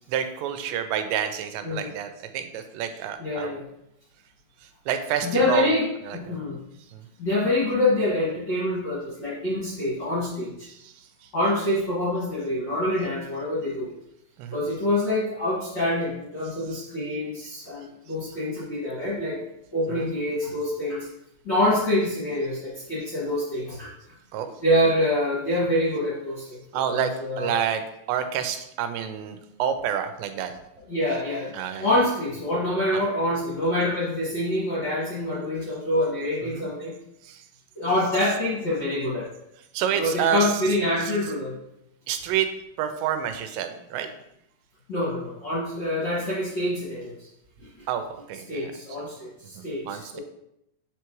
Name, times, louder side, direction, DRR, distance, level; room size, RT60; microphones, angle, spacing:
voice 1, 0.1-3.6 4.9-5.7 6.1-6.4 6.9-7.0 10.7-10.9 14.4-14.7 19.9-20.1 24.3-24.5 26.7-27.1 27.4-27.8 28.1-30.5 31.5-31.9 32.9-33.0 36.4-36.7 37.3-37.4 39.7-40.5 42.1-42.5 42.8-44.1 47.9-48.7 49.6-50.2, right 9 dB, 90° right, 8 dB, 2.8 m, -28 dB
voice 2, 3.2-3.6 5.2-5.9 6.1-6.6 7.2-10.7 11.3-13.9 14.5-19.4 19.7-21.1 21.4-23.9 24.6-26.6 26.9-27.6 30.9-36.9 37.7-39.3 40.0-41.5 44.9-47.3 47.6-47.8 48.5-50.2, left 1 dB, 45° left, -9 dB, 1.4 m, -26 dB
8.0 x 4.6 x 3.0 m, 0.80 s
omnidirectional pair, 4.9 m